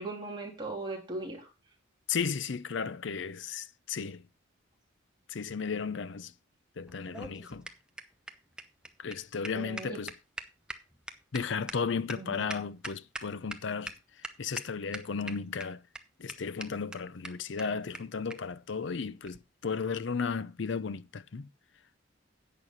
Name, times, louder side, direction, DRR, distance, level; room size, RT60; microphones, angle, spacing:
voice 1, 0.0-1.5 9.5-10.0 12.2-12.4, right 2 dB, 20° right, 3.3 m, -38 dB
voice 2, 2.1-4.2 5.3-6.3 6.8-7.7 9.0-10.1 11.3-15.8 16.2-21.5, left 5 dB, 60° left, 0.6 m, -34 dB
sound 1, 6.9-13.6 13.9-14.0 14.2-14.6 14.9-15.6 15.9-16.0 16.3-16.4 16.6-16.7 16.9-17.0 17.2-17.3 17.6-17.7 17.9-18.0 18.3-18.4 19.2-19.4, right 1 dB, 5° right, 0.7 m, -41 dB
10.5 x 8.3 x 3.9 m
head